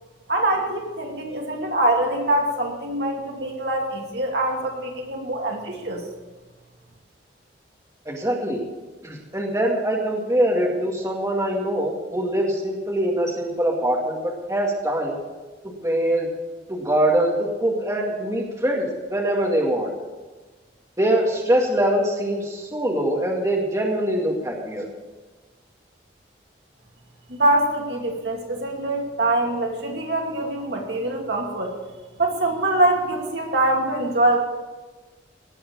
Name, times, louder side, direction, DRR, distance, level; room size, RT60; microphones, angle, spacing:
voice 1, 0.3-6.0 27.3-31.7 32.2-34.4, right 1 dB, 65° right, 0 dB, 2.4 m, -24 dB
voice 2, 8.1-8.6 9.0-15.2 15.8-16.3 16.7-19.9 21.0-24.9, right 1 dB, 15° right, -2 dB, 2.1 m, -23 dB
18.5 x 7.1 x 7.1 m, 1.3 s
head